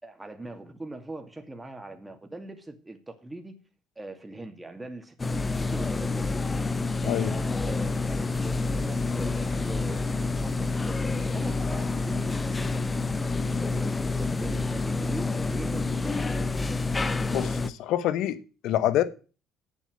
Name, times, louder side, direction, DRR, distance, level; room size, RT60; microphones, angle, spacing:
voice 1, 0.0-3.5 4.0-6.5 7.0-12.8 13.2-16.8, right 2 dB, 15° right, 2.5 m, -42 dB
sound 1, 5.2-17.7, left 3 dB, 25° left, 1.1 m, -28 dB
voice 2, 17.3-19.0, left 12 dB, 70° left, 1.2 m, -26 dB
8.4 x 8.1 x 7.9 m
hypercardioid pair, 60°, 0 cm